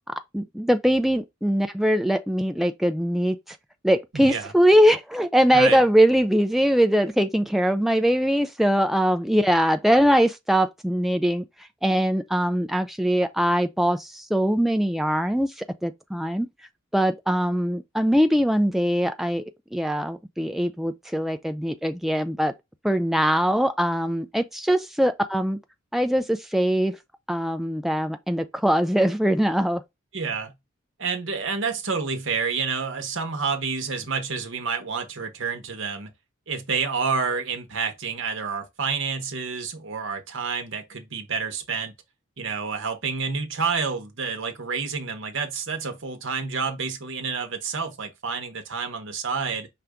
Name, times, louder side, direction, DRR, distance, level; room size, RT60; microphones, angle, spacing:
voice 1, 0.3-3.6 3.8-11.5 11.8-16.5 16.9-19.4 19.7-22.5 22.8-25.6 25.9-27.0 27.3-29.8, equal, ahead, 0.4 m, -22 dB
voice 2, 4.1-4.5 5.5-5.8 30.1-30.5 31.0-36.1 36.5-41.9 42.4-49.7, right 5 dB, 65° right, 1.0 m, -29 dB
5.7 x 2.6 x 3.5 m
head